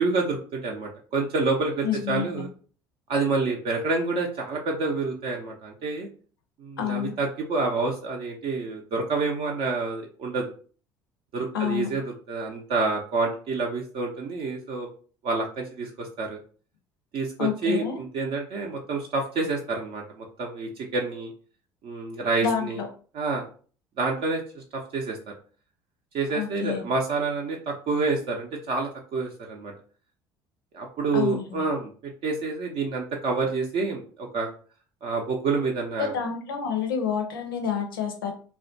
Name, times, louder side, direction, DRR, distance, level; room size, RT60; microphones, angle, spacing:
voice 1, 0.0-2.5 3.1-6.1 6.6-10.5 11.3-14.9 15.2-16.4 17.1-21.3 21.8-22.8 23.1-23.5 24.0-25.3 26.1-29.7 30.7-31.9 32.2-34.5 35.0-36.1, right 3 dB, 55° right, 0 dB, 0.5 m, -28 dB
voice 2, 1.8-2.4 6.8-7.1 11.5-11.9 17.4-18.0 22.4-22.9 26.3-26.8 31.1-31.6 36.0-38.3, left 7 dB, 90° left, 3 dB, 0.6 m, -28 dB
2.3 x 2.1 x 2.6 m, 0.41 s
hypercardioid pair, 65°, 11 cm